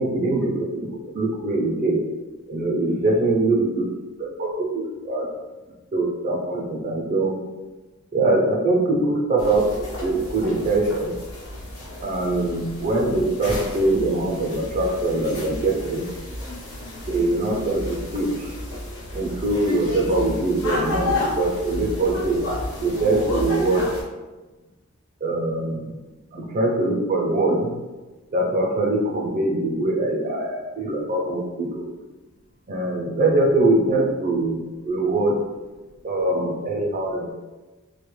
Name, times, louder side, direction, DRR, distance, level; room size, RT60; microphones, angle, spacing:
voice 1, 0.0-2.0 2.5-3.9 4.2-5.3 5.9-7.4 8.1-9.7 10.0-11.1 12.0-16.1 17.1-18.5 19.1-22.4 22.8-23.9 25.2-26.0 26.3-27.8 28.3-31.8 32.7-35.4 36.0-37.3, right 2 dB, 35° right, -1 dB, 0.3 m, -23 dB
voice 2, 2.9-3.4 26.2-26.6 34.6-34.9 35.7-36.1 37.0-37.3, left 3 dB, 50° left, -2 dB, 0.5 m, -42 dB
sound 1, 9.4-24.0, left 1 dB, 85° left, 0.9 m, -32 dB
2.2 x 2.0 x 3.0 m, 1.2 s
head